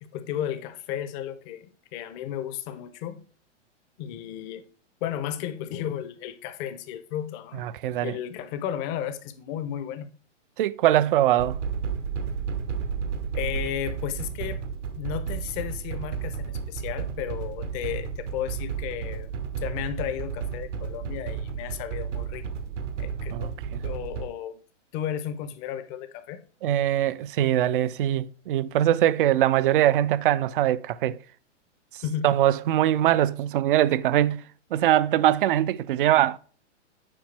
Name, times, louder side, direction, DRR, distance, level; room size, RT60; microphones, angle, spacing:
voice 1, 0.0-3.2 4.0-4.6 5.0-7.6 8.0-10.1 13.3-14.6 14.9-19.3 19.6-22.4 23.0-23.5 23.8-24.6 24.9-26.4 32.0-32.3, left 10 dB, 25° left, 0.6 m, -33 dB
voice 2, 7.5-8.2 10.6-11.6 23.3-23.8 26.6-31.2 32.2-34.4 34.7-36.4, right 12 dB, 50° right, 0.4 m, -22 dB
sound 1, 11.4-24.3, right 6 dB, 80° right, 1.0 m, -32 dB
7.6 x 4.9 x 3.3 m
hypercardioid pair, 145°, 36 cm